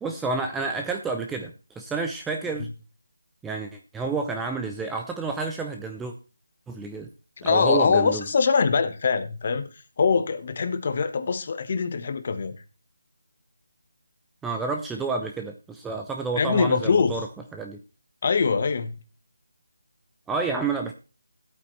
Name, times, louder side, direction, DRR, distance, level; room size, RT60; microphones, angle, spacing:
voice 1, 0.0-2.7 3.4-6.1 6.7-7.1 7.4-8.2 14.4-17.3 17.5-17.8 20.3-20.9, right 4 dB, 5° right, 3 dB, 0.5 m, -29 dB
voice 2, 7.4-9.7 10.0-12.6 16.4-17.1 18.2-18.9, left 5 dB, 35° left, 10 dB, 1.1 m, -23 dB
14.5 x 8.6 x 3.1 m, 0.33 s
figure-of-eight pair, 170°, 0 cm